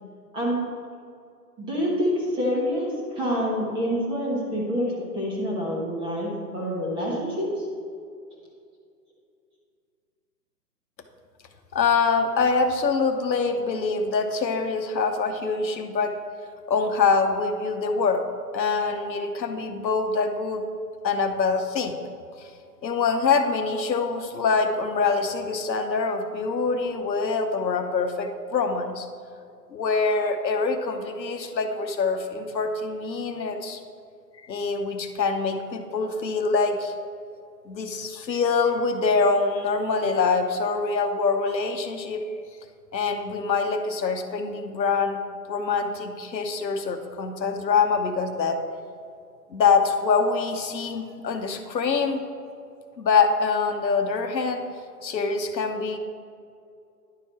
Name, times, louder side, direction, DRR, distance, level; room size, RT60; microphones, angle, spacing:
voice 1, 1.6-7.6, equal, 10° right, -3 dB, 0.9 m, -27 dB
voice 2, 11.7-16.1 16.7-18.2 18.5-20.6 21.0-22.0 22.4-22.5 22.8-29.1 29.7-33.8 34.5-36.9 37.7-42.2 42.9-45.2 45.5-48.6 49.5-52.2 53.0-54.6 55.0-56.0, left 4 dB, 90° left, 6 dB, 1.0 m, -24 dB
10.5 x 4.8 x 4.3 m, 2.4 s
hypercardioid pair, 140°, 50 cm